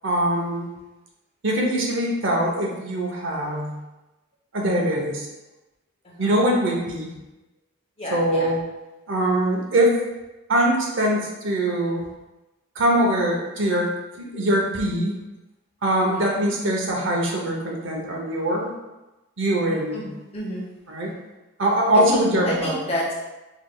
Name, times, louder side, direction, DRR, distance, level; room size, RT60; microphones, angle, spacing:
voice 1, 0.0-0.7 1.4-3.8 4.5-5.3 6.2-7.1 8.1-8.6 9.1-10.0 10.5-12.0 12.8-13.9 14.2-15.1 15.8-18.7 19.4-20.1 20.9-21.1 21.6-22.8, right 1 dB, 60° right, -1 dB, 0.7 m, -22 dB
voice 2, 6.0-6.4 8.0-8.5 16.0-16.4 19.9-20.7 22.1-23.1, equal, 30° left, -4 dB, 0.8 m, -30 dB
4.7 x 3.3 x 2.2 m, 1.0 s
head